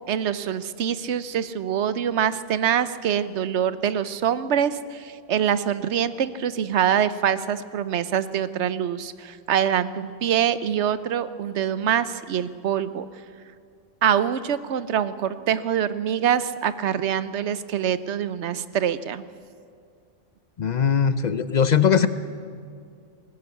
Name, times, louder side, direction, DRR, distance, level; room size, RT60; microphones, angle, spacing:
voice 1, 0.1-13.1 14.0-19.2, right 9 dB, 65° right, 14 dB, 1.0 m, -24 dB
voice 2, 20.6-22.1, left 7 dB, 45° left, 13 dB, 0.6 m, -20 dB
20.0 x 18.5 x 8.2 m, 2.2 s
omnidirectional pair, 1.3 m